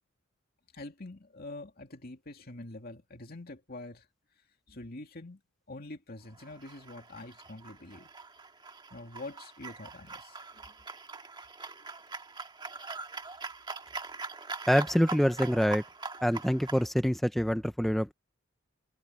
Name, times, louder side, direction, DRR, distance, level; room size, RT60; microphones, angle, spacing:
voice 1, 0.7-4.1 4.7-5.4 5.7-8.1 8.9-10.7, left 2 dB, 50° left, 2.5 m, -45 dB
sound 1, 6.3-16.8, right 4 dB, 25° right, 1.7 m, -43 dB
voice 2, 14.7-15.8 16.2-18.1, equal, ahead, 0.7 m, -26 dB
head